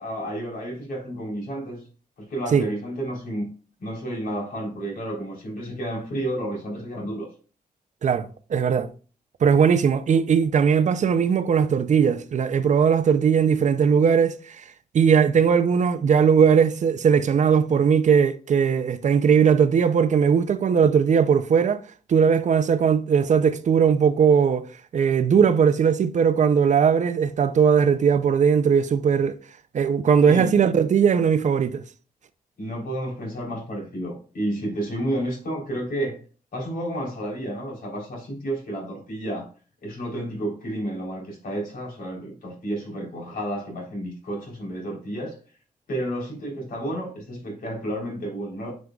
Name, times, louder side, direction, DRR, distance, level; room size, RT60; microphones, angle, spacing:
voice 1, 0.0-1.9 2.2-3.5 3.8-7.3 30.2-30.5 32.6-36.2 36.5-39.5 39.8-45.4 45.9-48.7, right 1 dB, 80° left, 3.6 m, -31 dB
voice 2, 8.0-8.9 9.4-14.6 14.9-21.8 22.1-24.7 24.9-29.3 29.7-31.8, right 7 dB, 55° right, 0.5 m, -19 dB
9.4 x 5.2 x 2.3 m
wide cardioid pair, 145°, 15 cm